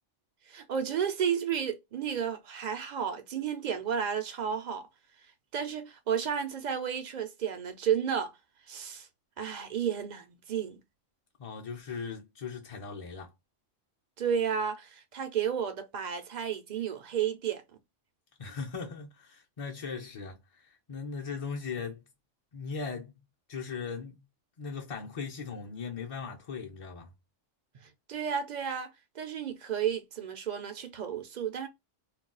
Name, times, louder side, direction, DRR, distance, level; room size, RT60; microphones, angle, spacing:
voice 1, 0.5-4.9 5.5-8.3 8.7-9.1 9.4-10.8 14.2-17.6 28.1-31.7, right 8 dB, 55° right, 0.5 m, -32 dB
voice 2, 11.4-13.3 18.4-22.0 22.5-23.1 23.5-24.2 24.6-27.1, left 5 dB, 40° left, 0.5 m, -38 dB
2.3 x 2.2 x 3.7 m
omnidirectional pair, 1.3 m